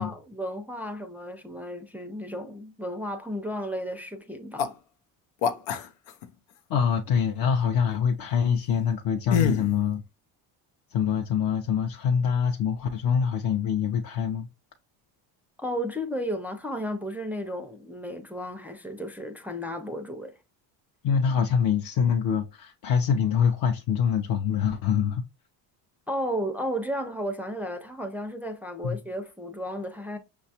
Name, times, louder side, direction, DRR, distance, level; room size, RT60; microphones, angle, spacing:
voice 1, 0.0-4.7 15.6-20.3 26.1-30.2, equal, 5° right, 0.4 m, -33 dB
sound 1, 4.6-4.7 5.4-6.3 9.3-9.7, left 7 dB, 85° left, 0.7 m, -25 dB
voice 2, 6.7-10.0 10.9-14.5 21.0-25.2 28.8-29.0, left 7 dB, 50° left, 0.6 m, -25 dB
5.7 x 2.3 x 2.7 m
cardioid pair, 90°, 46 cm